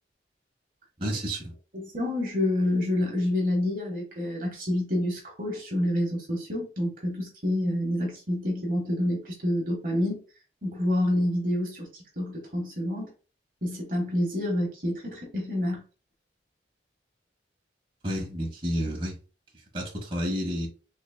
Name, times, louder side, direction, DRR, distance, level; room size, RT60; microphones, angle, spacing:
voice 1, 1.0-1.5 18.0-19.2 19.7-20.7, equal, 30° right, 1.2 m, -30 dB
voice 2, 1.7-10.2 10.6-11.9 12.2-13.1 13.6-15.8, left 1 dB, 50° right, 1.1 m, -28 dB
4.0 x 3.3 x 2.2 m
head